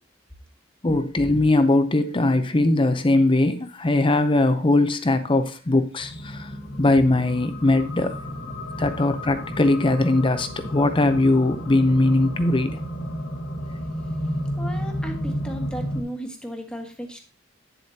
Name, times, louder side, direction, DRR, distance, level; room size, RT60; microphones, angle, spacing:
voice 1, 0.8-6.5 6.8-8.1 8.8-12.8, left 2 dB, 25° left, 0.7 m, -20 dB
sound 1, 6.0-16.0, equal, 75° left, 1.5 m, -32 dB
voice 2, 14.1-17.2, equal, 5° left, 1.5 m, -35 dB
9.6 x 7.4 x 2.8 m
head